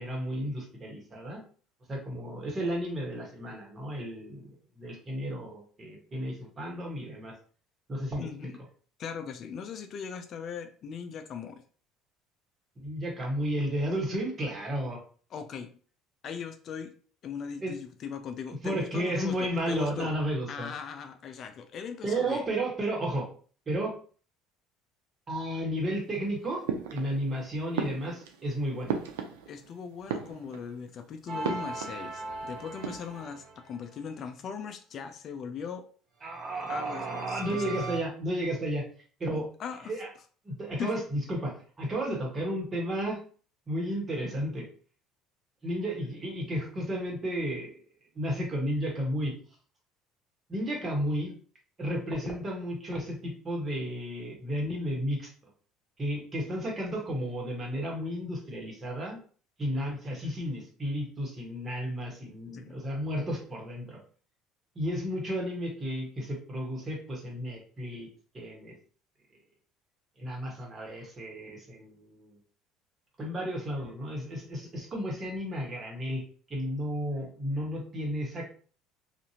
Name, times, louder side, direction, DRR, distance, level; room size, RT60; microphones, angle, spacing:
voice 1, 0.0-1.4 1.9-4.5 4.8-7.3 7.9-8.3 12.8-15.0 17.6-17.7 18.6-20.7 22.0-23.3 23.7-24.0 25.3-26.6 26.9-28.9 36.2-38.9 39.2-39.5 39.8-40.1 40.4-43.2 43.7-44.6 45.6-47.8 48.1-49.4 50.5-51.4 51.8-55.3 56.0-59.2 59.6-64.0 64.7-68.1 68.3-68.7 70.2-72.4 73.2-76.2 76.5-78.5, equal, 30° right, 0 dB, 1.2 m, -33 dB
voice 2, 8.2-8.6 9.0-11.6 15.3-15.7 16.2-16.9 17.2-20.2 20.5-22.4 29.5-35.8 36.7-37.7 39.3-40.0 40.8-40.9 62.5-62.8, left 6 dB, 50° left, 8 dB, 0.4 m, -39 dB
sound 1, 26.7-27.4 27.7-29.7 30.0-30.8 31.4-32.4 32.7-33.2, right 7 dB, 90° right, 0.4 m, -36 dB
sound 2, 31.3-34.0 36.2-38.0, right 3 dB, 60° right, 0.9 m, -39 dB
2.6 x 2.5 x 2.8 m, 0.43 s
supercardioid pair, 85°, 0 cm